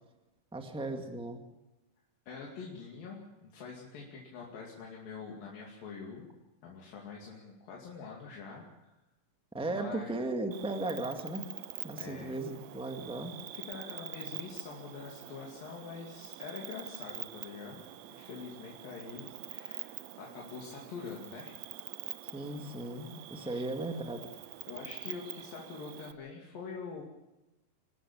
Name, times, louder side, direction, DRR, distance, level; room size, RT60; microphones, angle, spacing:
voice 1, 0.5-1.4 9.5-11.5 11.8-13.4 22.3-24.2, right 2 dB, 5° right, 5 dB, 0.9 m, -36 dB
voice 2, 2.3-6.3 6.6-9.0 9.7-10.1 12.0-12.3 13.5-21.6 23.3-23.6 24.7-27.0, left 5 dB, 85° left, -2 dB, 4.3 m, -45 dB
Cricket, 10.5-26.1, right 13 dB, 70° right, 1.8 m, -45 dB
26.0 x 12.5 x 8.7 m, 0.97 s
omnidirectional pair, 3.9 m